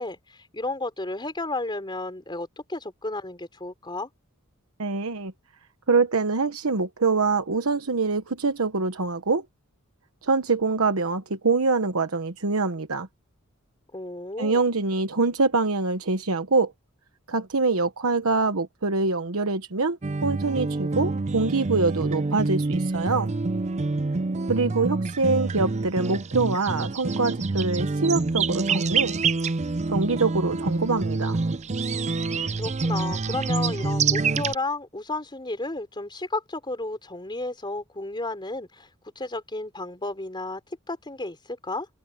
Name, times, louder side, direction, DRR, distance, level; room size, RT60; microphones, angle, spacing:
voice 1, 0.0-4.1 13.9-14.6 32.6-38.9 39.2-40.6 40.9-41.9, left 2 dB, 20° left, 3.7 m, -32 dB
voice 2, 4.8-5.3 5.9-9.4 10.2-13.1 14.4-16.7 17.3-23.3 24.5-29.2 29.9-31.4, right 3 dB, 80° right, 1.1 m, -24 dB
sound 1, 20.0-34.5, right 3 dB, 35° right, 0.5 m, -27 dB
head